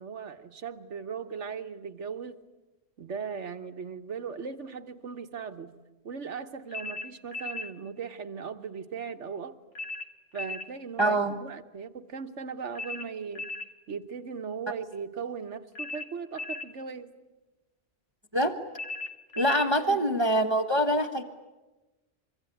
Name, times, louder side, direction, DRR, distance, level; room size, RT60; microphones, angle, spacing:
voice 1, 0.0-2.4 3.0-5.7 6.0-9.5 10.3-13.5 13.9-17.1 19.8-20.1, right 6 dB, 70° right, 8 dB, 1.5 m, -38 dB
sound 1, 6.7-7.7 9.7-10.7 12.7-13.7 15.7-16.7 18.7-19.7, left 3 dB, 70° left, 1.9 m, -37 dB
voice 2, 11.0-11.4 18.3-18.5 19.4-21.2, right 1 dB, 20° right, 6 dB, 1.4 m, -24 dB
25.5 x 24.5 x 9.2 m, 1.1 s
omnidirectional pair, 1.3 m